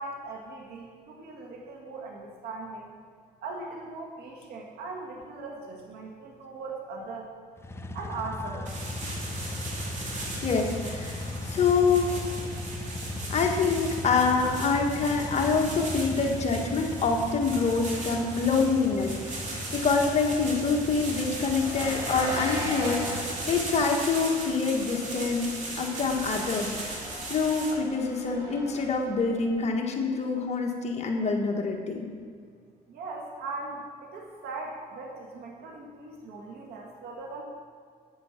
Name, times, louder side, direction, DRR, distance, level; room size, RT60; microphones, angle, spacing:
voice 1, 0.0-2.9 3.4-7.3 7.9-8.7 32.9-37.4, right 3 dB, 70° right, -1 dB, 1.8 m, -39 dB
sound 1, 7.6-24.3, left 2 dB, 15° left, 0.7 m, -38 dB
sound 2, 8.7-27.7, right 2 dB, 45° right, 2.6 m, -38 dB
voice 2, 10.0-12.3 13.3-27.0 27.3-32.1, left 4 dB, 40° left, 1 dB, 1.5 m, -26 dB
Engine, 14.0-29.7, left 1 dB, 20° right, 3.3 m, -42 dB
9.2 x 8.6 x 5.9 m, 2.1 s
cardioid pair, 110°, 17 cm